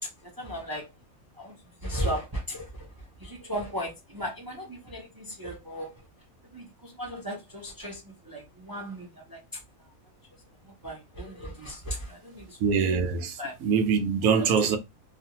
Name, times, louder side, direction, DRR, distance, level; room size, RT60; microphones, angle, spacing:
voice 1, 0.0-0.9 1.3-1.5 1.8-6.0 6.4-9.9 10.6-12.6 13.4-13.6 14.2-14.8, equal, 35° right, 0.3 m, -36 dB
voice 2, 12.6-14.8, right 6 dB, 80° right, 1.0 m, -24 dB
2.4 x 2.4 x 2.8 m
omnidirectional pair, 1.5 m